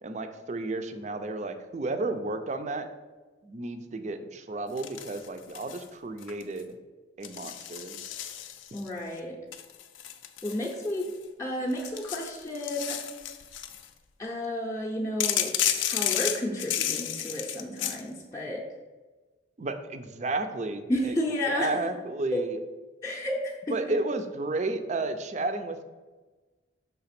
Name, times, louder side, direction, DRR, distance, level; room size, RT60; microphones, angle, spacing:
voice 1, 0.0-2.9 3.4-6.8 7.2-8.0 19.6-21.1 21.5-22.6 23.7-25.8, right 2 dB, 35° right, 8 dB, 0.4 m, -32 dB
sound 1, 4.8-5.9 6.2-6.6 7.2-8.9 9.5-11.2 11.7-13.9 15.2-18.0, left 10 dB, 80° left, 0.5 m, -32 dB
voice 2, 8.7-9.4 10.4-11.1 11.4-13.0 14.2-15.6 15.8-18.7 20.9-21.8 22.3-22.4 23.0-24.0, left 1 dB, 15° left, -4 dB, 0.6 m, -32 dB
5.8 x 3.4 x 5.8 m, 1.3 s
head